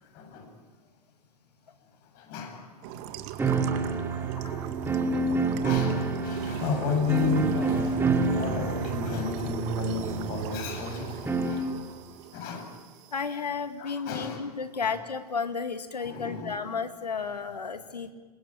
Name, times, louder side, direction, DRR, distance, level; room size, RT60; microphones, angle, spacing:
voice 1, 0.1-0.5 2.1-3.2 4.2-4.3 5.6-8.0 8.3-11.7 12.3-12.7 13.8-14.4 14.8-14.9 16.0-16.8, left 5 dB, 45° left, 4 dB, 7.8 m, -33 dB
sound 1, 2.8-13.3, right 12 dB, 45° right, 2.1 m, -38 dB
sound 2, 3.4-11.8, right 3 dB, 10° right, 3.0 m, -29 dB
voice 2, 13.1-18.1, left 5 dB, 85° left, 9 dB, 2.3 m, -33 dB
27.5 x 22.5 x 9.0 m, 1.3 s
figure-of-eight pair, 100°, 20 cm